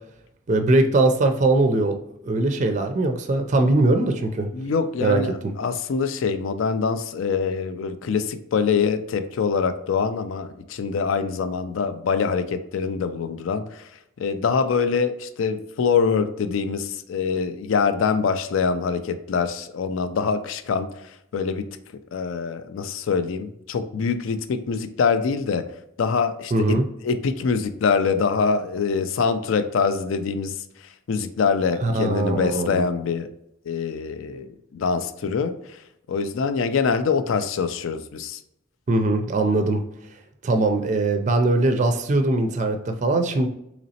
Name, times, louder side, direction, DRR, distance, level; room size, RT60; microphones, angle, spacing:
voice 1, 0.5-2.0 2.2-4.5 5.0-5.2 26.5-26.8 31.8-32.8 38.9-39.8 40.4-43.5, right 2 dB, 35° right, 6 dB, 0.4 m, -21 dB
voice 2, 4.5-13.9 14.2-21.7 22.1-25.7 26.0-26.8 27.0-33.3 33.7-35.8 36.1-38.4, left 5 dB, 75° left, 10 dB, 0.4 m, -24 dB
3.9 x 3.0 x 2.8 m, 0.79 s
head